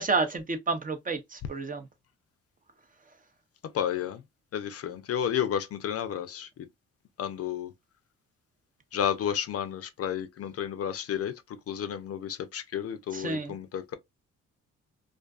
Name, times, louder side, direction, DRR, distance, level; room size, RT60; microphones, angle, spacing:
voice 1, 0.0-1.8 13.1-13.5, right 4 dB, 30° right, 0.5 m, -30 dB
voice 2, 3.7-4.2 4.5-6.6 7.2-7.7 8.9-14.0, left 9 dB, 55° left, 0.4 m, -32 dB
2.3 x 2.3 x 2.3 m
cardioid pair, 70°, 30 cm